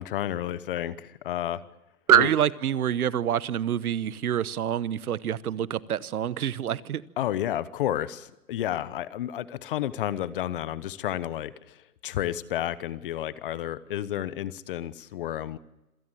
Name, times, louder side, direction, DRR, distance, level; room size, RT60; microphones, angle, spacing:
voice 1, 0.0-1.6 2.1-2.3 7.2-15.6, left 12 dB, 35° left, 0.9 m, -31 dB
voice 2, 2.1-7.0, right 10 dB, 70° right, 1.1 m, -25 dB
27.0 x 17.0 x 7.6 m
hypercardioid pair, 150°, 45 cm